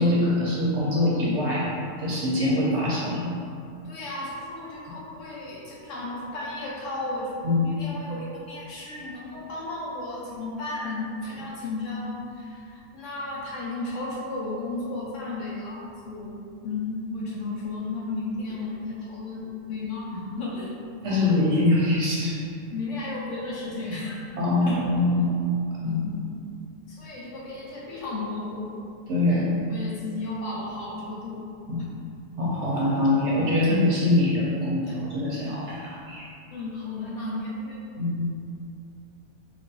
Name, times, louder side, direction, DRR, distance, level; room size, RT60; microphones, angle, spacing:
voice 1, 0.0-1.7 2.0-3.3 7.4-7.7 21.0-22.4 24.4-25.4 25.7-26.0 29.1-29.5 31.7-31.8 32.4-36.3 38.0-38.3, left 2 dB, 60° right, -6 dB, 0.8 m, -23 dB
voice 2, 3.8-20.7 21.1-21.5 22.7-24.2 24.6-24.9 25.8-26.4 26.9-28.8 29.3-31.5 34.8-34.9 36.5-37.9, left 2 dB, 65° left, -5 dB, 0.8 m, -34 dB
3.1 x 2.5 x 4.0 m, 2.5 s
omnidirectional pair, 1.6 m